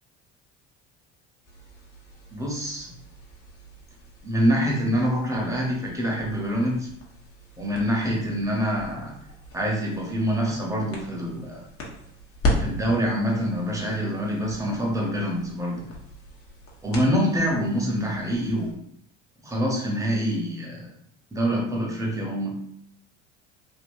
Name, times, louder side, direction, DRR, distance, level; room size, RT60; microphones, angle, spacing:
sound 1, 1.4-18.7, left 1 dB, 40° left, 1.1 m, -37 dB
voice 1, 2.3-2.9 4.2-6.9 7.6-9.1 9.5-11.6 12.6-15.9 16.8-18.8 19.4-20.9 21.3-22.6, equal, 10° right, -1 dB, 1.0 m, -25 dB
3.7 x 2.5 x 2.6 m, 0.73 s
hypercardioid pair, 75°, 35 cm